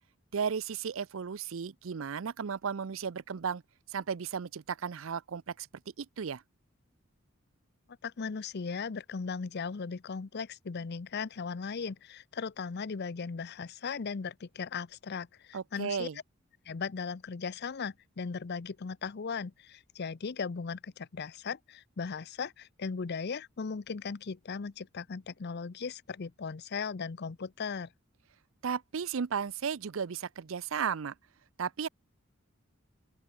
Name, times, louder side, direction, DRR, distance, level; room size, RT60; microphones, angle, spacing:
voice 1, 0.3-3.6 3.9-5.7 6.0-6.4 15.5-16.2 28.6-31.1 31.6-31.9, right 6 dB, 75° right, 0.5 m, -34 dB
voice 2, 8.0-16.1 16.7-27.9, left 5 dB, 55° left, 0.6 m, -37 dB
open air
head